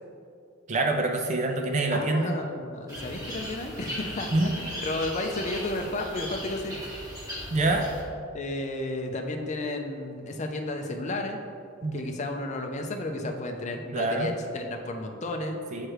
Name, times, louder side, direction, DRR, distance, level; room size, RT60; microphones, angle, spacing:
voice 1, 0.7-2.3 4.3-4.5 7.5-7.9 11.8-12.0 13.2-13.3 13.9-14.3 15.7-15.9, right 2 dB, 35° right, 3 dB, 0.4 m, -25 dB
voice 2, 1.9-6.8 8.3-11.4 11.9-15.6, left 2 dB, 35° left, 3 dB, 0.5 m, -33 dB
sound 1, 2.9-8.0, equal, 15° right, 1.4 m, -37 dB
7.5 x 3.2 x 4.7 m, 2.5 s
head